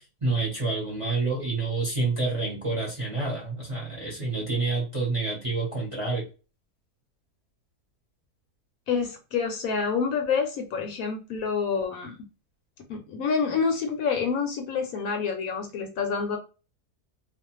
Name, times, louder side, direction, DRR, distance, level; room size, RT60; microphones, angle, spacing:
voice 1, 0.0-6.2, right 3 dB, 25° right, -4 dB, 0.8 m, -28 dB
voice 2, 8.9-12.2 12.9-16.4, left 5 dB, 70° left, 4 dB, 0.9 m, -27 dB
2.5 x 2.3 x 2.9 m, 0.34 s
omnidirectional pair, 1.7 m